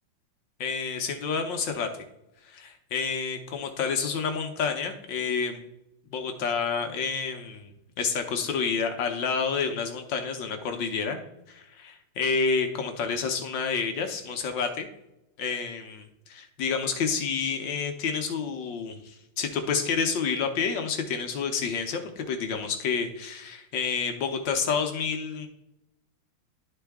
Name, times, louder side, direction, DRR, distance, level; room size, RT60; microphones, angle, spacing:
voice 1, 0.6-1.9 2.4-5.6 6.1-7.7 8.0-11.2 11.5-14.9 15.4-25.5, left 5 dB, 70° left, 5 dB, 1.3 m, -29 dB
11.5 x 3.9 x 3.4 m, 0.87 s
omnidirectional pair, 2.3 m